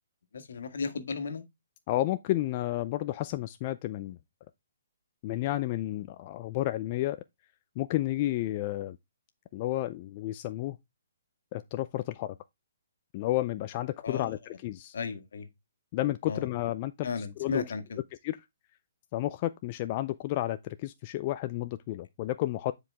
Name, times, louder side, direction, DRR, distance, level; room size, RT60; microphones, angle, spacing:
voice 1, 0.3-1.4 14.0-14.3 14.9-15.5 16.2-16.5 17.0-18.0, left 5 dB, 70° left, 1.6 m, -34 dB
voice 2, 1.9-4.2 5.2-7.2 7.8-9.0 9.5-10.8 11.5-12.4 13.1-15.0 15.9-17.1 17.4-17.6 18.2-18.4 19.1-22.7, left 15 dB, 30° left, 0.4 m, -31 dB
9.8 x 4.8 x 3.4 m
hypercardioid pair, 165°, 0 cm